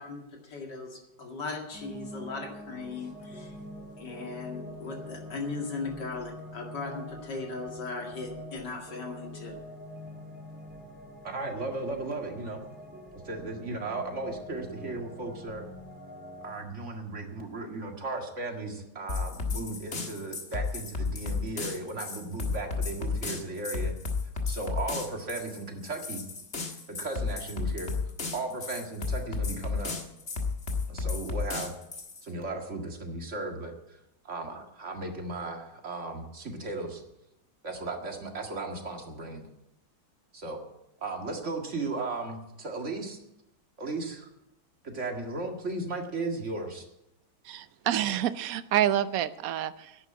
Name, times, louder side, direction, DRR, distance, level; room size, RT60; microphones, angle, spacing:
voice 1, 0.0-3.5 4.0-9.5, left 3 dB, 70° left, 1 dB, 2.8 m, -38 dB
sound 1, 1.7-16.5, left 1 dB, 5° right, 2.3 m, -45 dB
voice 2, 11.2-12.6 13.2-15.7 16.4-24.0 24.5-26.2 26.6-27.9 28.3-30.0 30.9-31.7 32.2-34.0 34.2-37.0 37.6-39.5 40.3-40.6 41.0-43.2 43.8-44.3 44.8-46.9, right 3 dB, 40° right, 3 dB, 2.1 m, -36 dB
sound 2, 19.1-32.2, left 4 dB, 40° left, 1.8 m, -33 dB
voice 3, 47.4-50.0, right 11 dB, 65° right, 14 dB, 1.0 m, -28 dB
11.0 x 9.3 x 8.6 m, 0.87 s
omnidirectional pair, 1.9 m